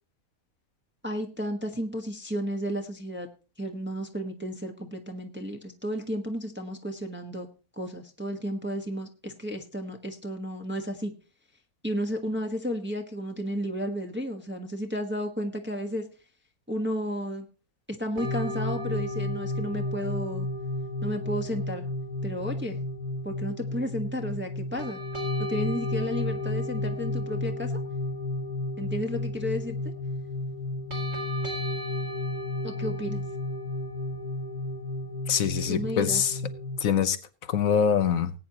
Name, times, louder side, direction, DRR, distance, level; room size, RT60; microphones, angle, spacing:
voice 1, 1.0-3.3 3.6-7.5 7.8-11.1 11.8-16.0 16.7-17.4 17.9-20.5 21.0-21.9 22.2-22.8 23.2-25.0 25.4-27.7 28.8-29.8 32.6-33.2 35.7-36.2, equal, 10° right, 3 dB, 1.3 m, -32 dB
sound 1, 18.2-36.8, left 1 dB, 55° right, 3.8 m, -32 dB
voice 2, 35.3-36.4 36.8-37.2 37.5-38.3, left 7 dB, 70° left, 12 dB, 1.3 m, -24 dB
19.5 x 9.2 x 3.0 m, 0.33 s
omnidirectional pair, 1.5 m